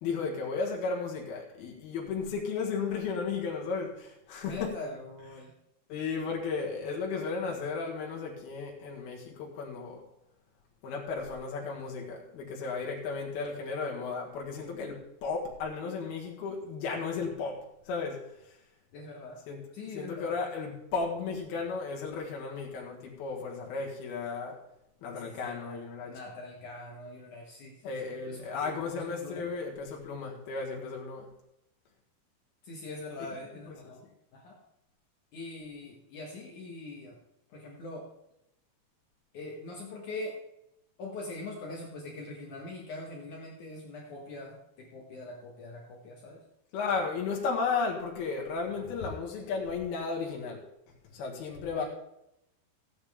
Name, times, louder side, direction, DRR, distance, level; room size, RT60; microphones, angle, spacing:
voice 1, 0.0-4.7 5.9-10.0 10.8-18.3 19.5-19.6 19.9-24.6 25.0-26.2 27.8-31.3 33.8-33.9 46.7-50.6 51.1-51.8, left 4 dB, 75° left, -2 dB, 3.6 m, -34 dB
voice 2, 4.4-5.5 6.2-6.6 18.9-19.4 19.7-20.3 25.2-29.5 32.6-34.0 34.3-34.6 35.3-37.2 37.5-38.1 39.3-40.3 41.0-46.4 51.7-51.8, left 2 dB, 60° left, -1 dB, 2.6 m, -43 dB
16.0 x 8.7 x 3.6 m, 0.82 s
omnidirectional pair, 4.5 m